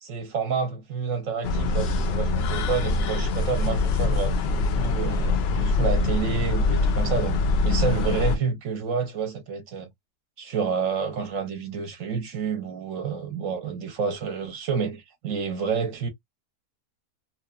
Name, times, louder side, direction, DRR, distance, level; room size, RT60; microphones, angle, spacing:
voice 1, 0.0-7.4 7.6-9.9 10.4-16.1, right 6 dB, 65° right, 1.0 m, -29 dB
sound 1, 1.4-8.4, left 3 dB, 75° left, 0.5 m, -24 dB
2.9 x 2.1 x 2.2 m
omnidirectional pair, 1.6 m